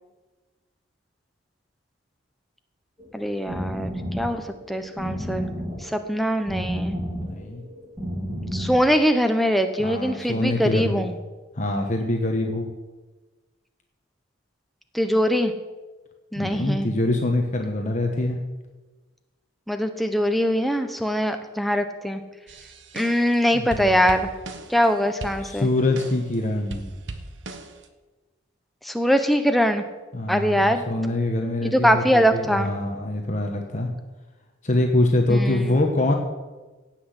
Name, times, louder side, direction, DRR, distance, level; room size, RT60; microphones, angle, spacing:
sound 1, 3.0-9.1, equal, 15° right, 3.3 m, -32 dB
voice 1, 3.1-3.9 4.2-4.4 4.7-5.5 5.8-7.0 8.5-11.2 14.9-15.5 16.3-16.9 19.7-22.2 22.9-24.3 24.7-25.7 28.8-29.8 30.3-30.8 31.6-32.7 35.3-35.7, equal, ahead, 7 dB, 0.8 m, -22 dB
voice 2, 7.2-7.6 9.8-11.1 11.6-12.7 16.3-18.4 23.5-24.0 25.4-26.9 30.1-33.9 34.6-36.1, left 1 dB, 35° left, 2 dB, 1.1 m, -24 dB
sound 2, 22.5-23.4 23.7-24.9 25.2-26.4 26.7-27.9, right 2 dB, 60° right, 1.1 m, -38 dB
16.5 x 5.9 x 8.1 m, 1.2 s
head